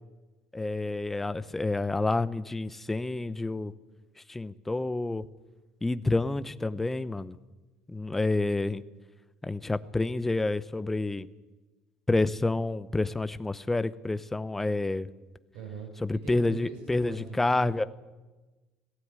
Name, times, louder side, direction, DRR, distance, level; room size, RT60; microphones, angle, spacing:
voice 1, 0.5-3.7 4.3-5.3 5.8-7.4 7.9-8.8 9.4-11.3 12.1-15.1 16.0-17.8, left 2 dB, 10° left, 15 dB, 0.8 m, -29 dB
voice 2, 15.5-17.9, right 5 dB, 85° right, 3 dB, 6.0 m, -43 dB
17.5 x 16.0 x 9.7 m, 1.2 s
cardioid pair, 120°, 2 cm